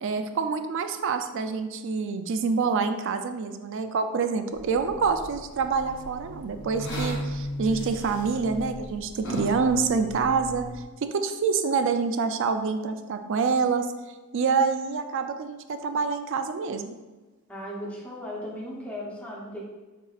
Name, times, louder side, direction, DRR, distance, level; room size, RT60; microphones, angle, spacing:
voice 1, 0.0-10.7 11.0-13.9 14.3-17.0, right 5 dB, 60° right, 8 dB, 0.4 m, -26 dB
sound 1, 4.5-10.8, equal, 55° left, 0.9 m, -36 dB
voice 2, 17.5-19.7, equal, 5° left, -5 dB, 0.8 m, -36 dB
7.0 x 2.8 x 2.4 m, 1.2 s
head